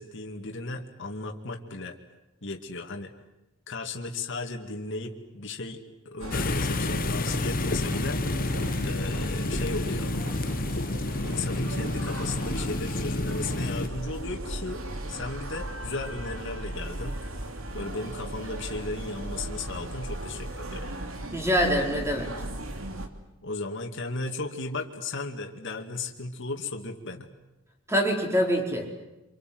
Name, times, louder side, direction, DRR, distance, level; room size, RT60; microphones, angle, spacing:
voice 1, 0.0-2.0 2.4-3.1 3.7-8.5 8.8-10.1 11.2-14.8 15.1-17.2 17.7-20.9 23.4-27.3, left 3 dB, 60° left, 2 dB, 2.4 m, -35 dB
sound 1, 6.2-23.1, right 1 dB, 80° right, 2.8 m, -37 dB
sound 2, 6.3-13.9, left 2 dB, 45° left, 1.0 m, -29 dB
voice 2, 21.3-22.3 27.9-28.9, equal, 15° right, 2 dB, 4.8 m, -25 dB
28.5 x 26.5 x 7.9 m, 0.98 s
head